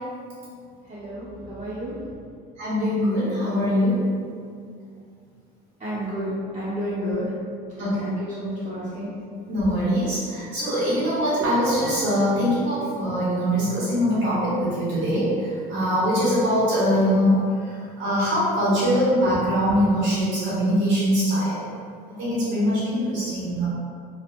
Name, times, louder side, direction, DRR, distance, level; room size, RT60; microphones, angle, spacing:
voice 1, 0.9-2.0 5.8-7.3 7.8-9.1 11.4-11.5 13.8-13.9 19.3-19.4, equal, 30° right, -13 dB, 1.0 m, -31 dB
voice 2, 2.6-4.0 7.8-8.0 9.5-17.7 18.0-21.7 22.1-23.7, equal, 75° right, -9 dB, 1.2 m, -22 dB
3.3 x 2.4 x 2.5 m, 2.3 s
supercardioid pair, 100°, 20 cm